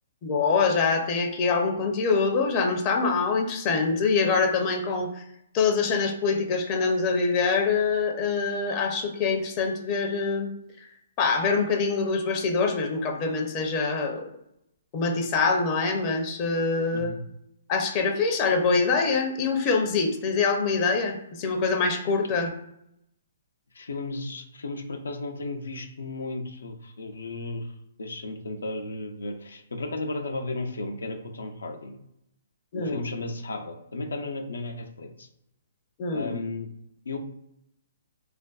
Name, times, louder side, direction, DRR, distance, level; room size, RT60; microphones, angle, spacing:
voice 1, 0.2-5.2 5.5-10.5 11.2-14.3 14.9-17.1 17.7-22.5 32.7-33.0 36.0-36.3, left 4 dB, 35° left, 3 dB, 0.5 m, -24 dB
voice 2, 23.7-32.0 32.7-35.3 36.1-36.7 37.1-37.2, left 2 dB, 85° left, 4 dB, 0.4 m, -34 dB
2.4 x 2.2 x 2.3 m, 0.79 s
hypercardioid pair, 140°, 0 cm